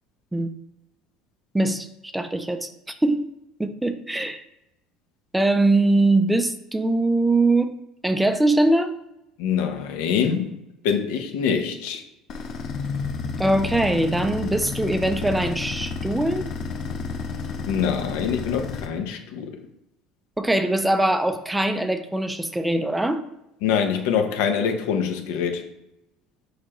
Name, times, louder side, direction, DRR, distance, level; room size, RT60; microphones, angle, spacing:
voice 1, 1.5-1.9 2.1-2.7 3.0-3.2 3.6-4.4 5.3-7.7 8.0-8.9 13.4-16.4 20.4-23.2, right 2 dB, 5° right, 0.4 m, -22 dB
voice 2, 9.4-10.6 10.8-12.0 17.7-19.6 23.6-25.6, left 7 dB, 90° left, 0.9 m, -24 dB
sound 1, 12.3-18.9, left 4 dB, 45° left, 0.7 m, -31 dB
6.7 x 5.0 x 3.0 m
cardioid pair, 155°, 0 cm